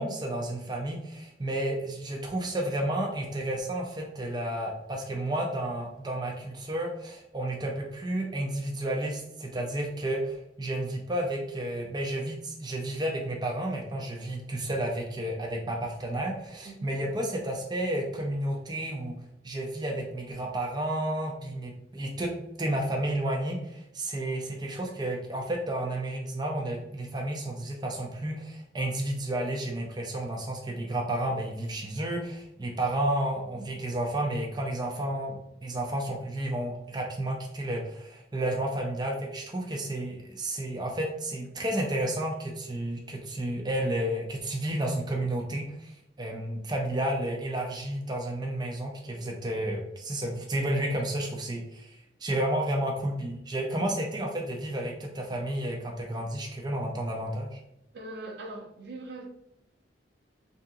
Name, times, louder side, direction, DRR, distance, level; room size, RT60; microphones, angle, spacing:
voice 1, 0.0-19.2 19.4-22.3 22.6-57.6, right 1 dB, 25° right, 0 dB, 0.6 m, -31 dB
voice 2, 16.6-17.0 33.5-33.8 57.9-59.3, right 2 dB, 65° right, 1 dB, 0.8 m, -41 dB
3.6 x 2.8 x 3.6 m, 0.80 s
head